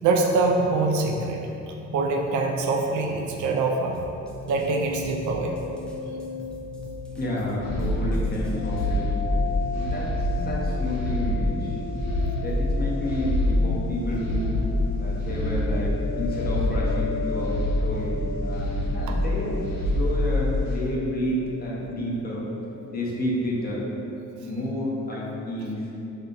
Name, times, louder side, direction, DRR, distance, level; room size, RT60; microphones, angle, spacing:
voice 1, 0.0-4.0 4.5-5.6 19.1-19.2, right 3 dB, 75° right, 1 dB, 0.4 m, -24 dB
sound 1, 3.9-8.9, right 1 dB, 5° left, 0.4 m, -45 dB
sound 2, 4.1-23.6, left 4 dB, 85° left, 0.5 m, -36 dB
voice 2, 7.2-9.2 9.7-11.8 12.4-14.6 15.0-17.5 17.8-18.2 18.4-19.6 19.9-22.5 22.9-23.8 24.4-25.8, left 1 dB, 30° left, -5 dB, 0.7 m, -30 dB
sound 3, 7.6-20.8, left 1 dB, 60° left, 0.9 m, -26 dB
2.7 x 2.3 x 3.8 m, 2.9 s
cardioid pair, 90°, 30 cm